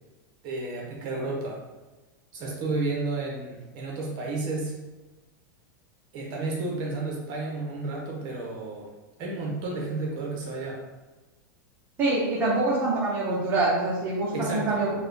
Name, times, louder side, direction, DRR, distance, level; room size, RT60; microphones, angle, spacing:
voice 1, 0.4-1.6 2.3-4.7 6.1-8.9 9.2-10.8 14.3-14.8, right 3 dB, 40° right, -2 dB, 1.0 m, -32 dB
voice 2, 12.0-14.9, right 2 dB, 20° right, -7 dB, 0.8 m, -25 dB
3.5 x 2.3 x 3.4 m, 1.2 s
supercardioid pair, 145°, 11 cm